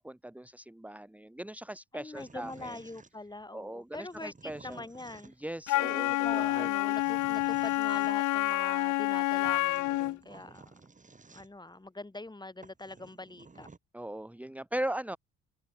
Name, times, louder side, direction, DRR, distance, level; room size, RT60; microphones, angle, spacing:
voice 1, 0.0-2.8 3.5-4.8 5.4-6.9 9.9-10.0 13.9-15.2, right 1 dB, 5° right, 1.7 m, -39 dB
voice 2, 1.9-5.3 5.8-10.7 11.3-13.7, left 2 dB, 15° left, 2.7 m, -43 dB
sound 1, 2.1-3.5 3.9-5.6 6.6-8.1 9.1-9.2 9.4-11.7 12.3-12.4 12.6-13.8, right 4 dB, 25° right, 5.0 m, -54 dB
Wind instrument woodwind instrument, 5.7-10.2, left 17 dB, 80° left, 0.6 m, -28 dB
cardioid pair, 90°, 30 cm